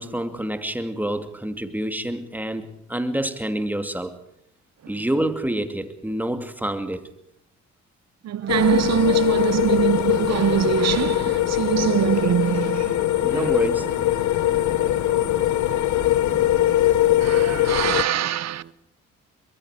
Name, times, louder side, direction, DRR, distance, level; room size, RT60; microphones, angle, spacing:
voice 1, 0.0-4.2 4.9-7.0 13.2-13.9, right 1 dB, 5° right, 2.5 m, -27 dB
voice 2, 8.2-13.0 13.3-13.6 17.2-18.6, right 11 dB, 60° right, 0.8 m, -23 dB
sound 1, 8.4-18.7, right 8 dB, 40° right, 1.1 m, -40 dB
sound 2, 8.5-18.0, left 14 dB, 70° left, 0.9 m, -21 dB
23.5 x 22.5 x 5.0 m
cardioid pair, 90°, 30 cm